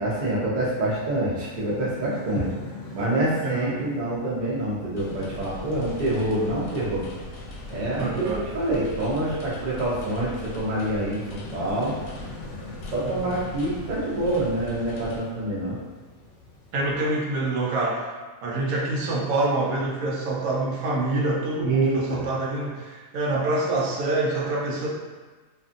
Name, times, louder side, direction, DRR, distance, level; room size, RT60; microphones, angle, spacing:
voice 1, 0.0-2.5 2.9-7.0 7.7-11.9 12.9-15.8 21.6-22.2, right 1 dB, 45° right, -6 dB, 0.6 m, -26 dB
sound 1, 0.7-17.1, left 3 dB, 65° left, 0.5 m, -44 dB
sound 2, 5.0-15.2, left 2 dB, 85° left, 1.1 m, -39 dB
voice 2, 8.0-8.4 13.2-13.3 16.7-18.1 18.4-24.9, right 2 dB, 90° right, -2 dB, 1.1 m, -26 dB
2.6 x 2.5 x 2.4 m, 1.3 s
omnidirectional pair, 1.5 m